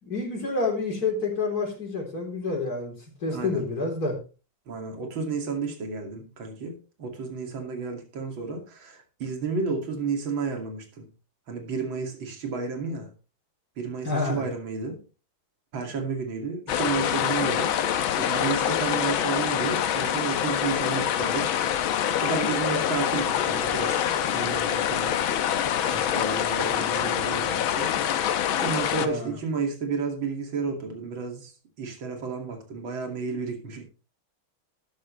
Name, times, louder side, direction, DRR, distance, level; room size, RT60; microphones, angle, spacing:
voice 1, 0.0-2.9 3.2-4.1 14.0-14.4 29.0-29.4, left 3 dB, 45° left, 1 dB, 4.3 m, -28 dB
voice 2, 3.3-3.6 4.7-11.1 11.5-13.1 13.8-15.0 15.7-21.5 22.2-25.2 25.9-27.9 28.6-31.5 31.8-33.8, right 4 dB, 65° right, 3 dB, 3.2 m, -32 dB
sound 1, 16.7-29.1, left 10 dB, 75° left, 1.7 m, -25 dB
13.0 x 11.0 x 3.2 m, 0.34 s
omnidirectional pair, 2.3 m